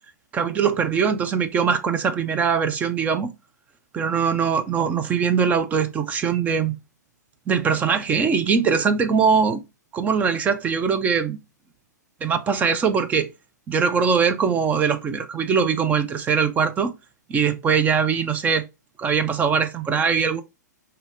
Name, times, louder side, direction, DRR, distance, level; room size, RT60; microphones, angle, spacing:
voice 1, 0.3-3.3 3.9-6.8 7.5-9.6 9.9-11.4 12.2-13.3 13.7-16.9 17.3-18.6 19.0-20.4, right 6 dB, 15° right, 0.5 m, -21 dB
5.6 x 2.8 x 2.6 m
figure-of-eight pair, 115°, 10 cm